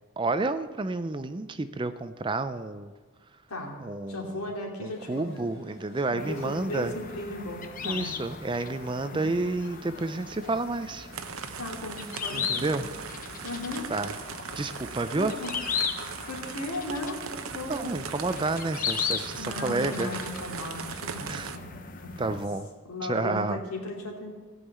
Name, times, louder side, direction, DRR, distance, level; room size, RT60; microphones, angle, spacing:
voice 1, 0.2-2.9 3.8-4.4 4.8-6.9 7.8-11.1 12.3-13.1 13.9-14.1 14.6-15.4 17.7-20.1 21.3-21.5 22.2-22.7 23.0-23.6, right 2 dB, 20° right, 11 dB, 0.4 m, -30 dB
voice 2, 4.1-5.4 6.0-8.2 9.0-9.3 11.6-12.7 13.4-13.9 15.1-15.5 16.3-17.9 19.4-22.4 22.8-24.3, left 1 dB, 75° left, 0 dB, 2.7 m, -37 dB
sound 1, 4.9-14.4, left 1 dB, 55° left, 2.8 m, -53 dB
sound 2, 6.2-22.5, left 6 dB, 35° left, 0.7 m, -37 dB
sound 3, 11.1-21.6, right 6 dB, 70° right, 0.8 m, -39 dB
16.5 x 5.5 x 8.3 m, 1.4 s
head